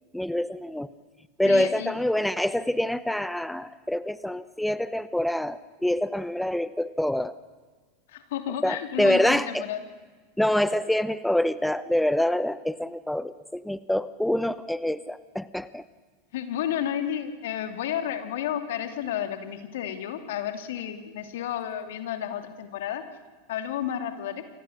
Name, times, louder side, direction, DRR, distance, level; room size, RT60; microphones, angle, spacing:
voice 1, 0.1-0.9 1.4-7.3 8.6-9.7 10.4-15.8, left 1 dB, 5° left, 15 dB, 0.9 m, -26 dB
voice 2, 1.4-1.9 8.1-9.8 16.3-23.0 23.5-24.4, left 10 dB, 65° left, 8 dB, 2.7 m, -31 dB
29.0 x 24.5 x 6.6 m, 1.4 s
hypercardioid pair, 85°, 0 cm